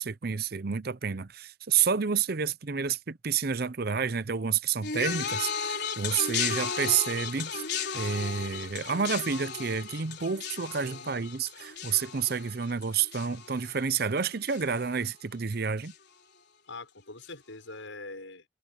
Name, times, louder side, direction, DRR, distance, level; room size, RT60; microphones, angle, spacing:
voice 1, 0.0-7.6 7.9-15.9, right 6 dB, 50° right, 0.7 m, -29 dB
sound 1, 4.8-14.2 14.5-15.0 15.9-16.0, left 6 dB, 55° left, 4.8 m, -35 dB
voice 2, 10.7-11.1 16.7-18.4, left 3 dB, 75° left, 6.7 m, -43 dB
head